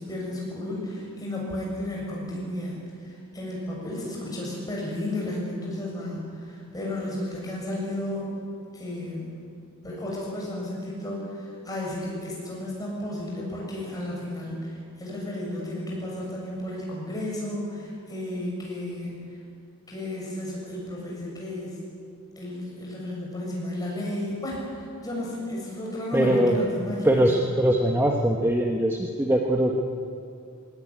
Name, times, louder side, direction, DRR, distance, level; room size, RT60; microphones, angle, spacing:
voice 1, 0.0-8.3 8.7-9.4 9.8-19.1 19.9-21.8 22.4-27.3, left 1 dB, 15° left, -3 dB, 6.8 m, -33 dB
voice 2, 26.1-26.6 27.0-29.8, right 1 dB, 10° right, 1 dB, 1.1 m, -22 dB
20.0 x 18.5 x 9.9 m, 2.5 s
head